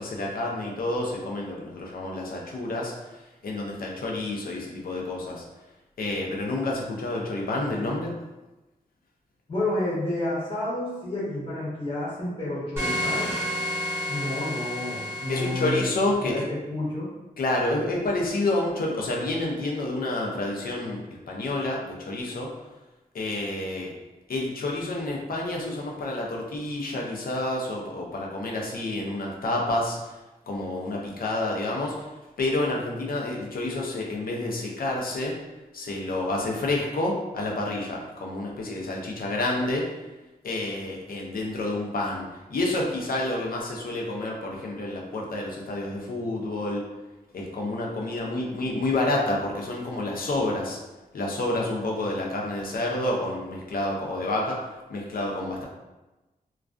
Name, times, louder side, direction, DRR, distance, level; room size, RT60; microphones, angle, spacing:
voice 1, 0.0-2.9 3.4-5.4 6.0-8.1 15.3-16.4 17.4-22.5 23.1-23.9 24.3-30.0 30.5-31.9 32.4-35.4 35.7-39.9 40.4-46.8 47.3-50.8 51.1-54.6 54.9-55.6, left 2 dB, 65° left, -1 dB, 0.5 m, -29 dB
voice 2, 9.5-13.3 14.1-15.8 16.2-17.1, left 1 dB, 35° left, -9 dB, 0.8 m, -30 dB
sound 1, 12.8-15.8, left 1 dB, 15° right, 0.9 m, -30 dB
2.3 x 2.3 x 2.4 m, 1.1 s
wide cardioid pair, 145°, 16 cm